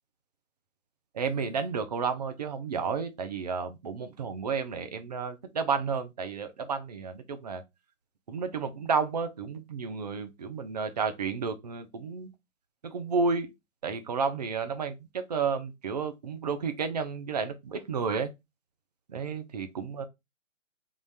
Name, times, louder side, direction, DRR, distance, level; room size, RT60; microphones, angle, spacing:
voice 1, 1.1-7.6 8.3-12.3 12.8-13.5 13.8-18.3 19.1-20.0, right 5 dB, 35° right, 0.5 m, -31 dB
3.7 x 2.4 x 4.5 m
figure-of-eight pair, 135°, 39 cm